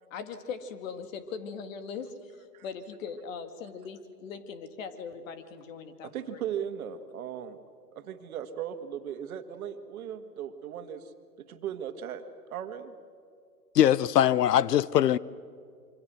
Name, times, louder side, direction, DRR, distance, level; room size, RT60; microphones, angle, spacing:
voice 1, 0.1-6.4, left 6 dB, 55° left, 2.2 m, -40 dB
voice 2, 6.0-7.6 7.9-11.1 11.4-12.2 12.5-12.9, right 9 dB, 60° right, 1.9 m, -37 dB
voice 3, 13.7-15.2, left 11 dB, 80° left, 0.7 m, -22 dB
26.5 x 24.5 x 6.3 m
hypercardioid pair, 125°, 48 cm